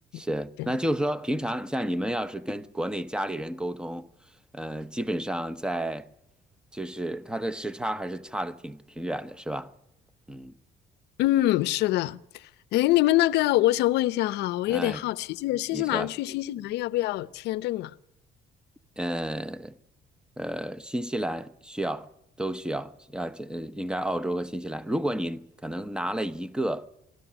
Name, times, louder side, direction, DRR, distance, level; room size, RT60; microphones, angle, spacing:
voice 1, 0.1-4.1 4.5-6.1 6.7-9.7 10.3-10.5 14.7-15.0 15.7-16.1 19.0-19.8 20.4-22.1 22.4-26.9, right 1 dB, 5° right, 0.8 m, -31 dB
voice 2, 11.2-12.4 12.7-17.9, left 16 dB, 85° left, 0.7 m, -25 dB
21.0 x 13.5 x 9.9 m
cardioid pair, 110°, 17 cm